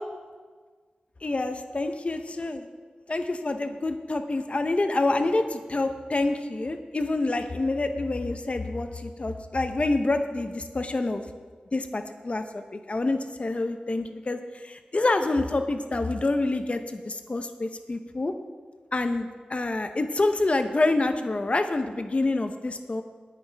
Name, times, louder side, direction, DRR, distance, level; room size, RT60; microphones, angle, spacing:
voice 1, 1.2-2.7 3.1-11.2 11.7-18.3 18.9-23.0, left 2 dB, 40° left, 7 dB, 0.7 m, -27 dB
19.0 x 9.2 x 3.4 m, 1.5 s
wide cardioid pair, 65°, 3 cm